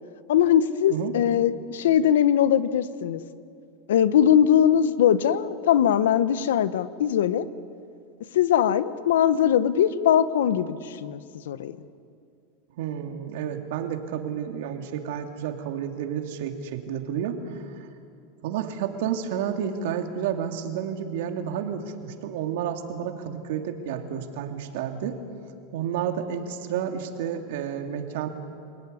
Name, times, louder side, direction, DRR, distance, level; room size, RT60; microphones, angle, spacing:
voice 1, 0.3-3.2 3.9-7.5 8.3-11.8, left 9 dB, 90° left, 14 dB, 1.1 m, -21 dB
voice 2, 12.8-17.6 18.4-25.2 25.7-28.3, right 8 dB, 70° right, 5 dB, 2.6 m, -30 dB
26.5 x 18.0 x 9.8 m, 2.4 s
supercardioid pair, 130°, 0 cm